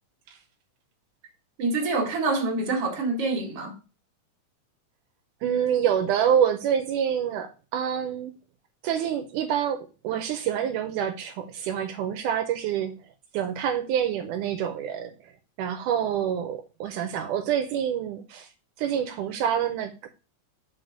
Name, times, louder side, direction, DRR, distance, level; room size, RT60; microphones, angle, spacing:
voice 1, 1.6-3.7, right 3 dB, 50° right, 2.6 m, -26 dB
voice 2, 5.4-8.3 8.8-13.0 13.3-15.1 15.6-18.5 18.8-20.1, right 9 dB, 85° right, 2.2 m, -27 dB
6.5 x 4.1 x 6.4 m
omnidirectional pair, 3.6 m